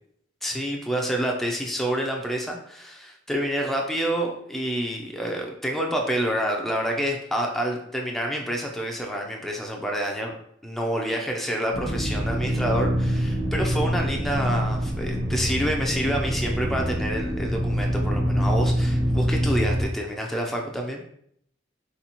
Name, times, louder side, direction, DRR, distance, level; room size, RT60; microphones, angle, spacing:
voice 1, 0.4-10.4 10.6-21.0, equal, ahead, 0 dB, 0.5 m, -28 dB
sound 1, 11.7-19.9, equal, 75° right, 1.2 m, -25 dB
4.1 x 4.1 x 2.9 m, 0.70 s
head